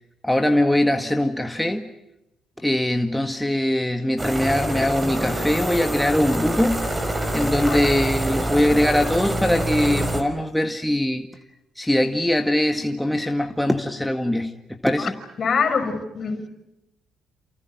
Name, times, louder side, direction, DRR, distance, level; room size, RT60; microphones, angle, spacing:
voice 1, 0.2-1.9 2.6-6.9 7.3-11.3 11.8-15.2, left 1 dB, 5° left, 1.8 m, -22 dB
sound 1, 4.2-10.2, right 1 dB, 20° right, 5.2 m, -26 dB
voice 2, 15.4-16.5, left 5 dB, 50° left, 5.7 m, -24 dB
29.0 x 28.5 x 6.1 m
cardioid pair, 90°, 0 cm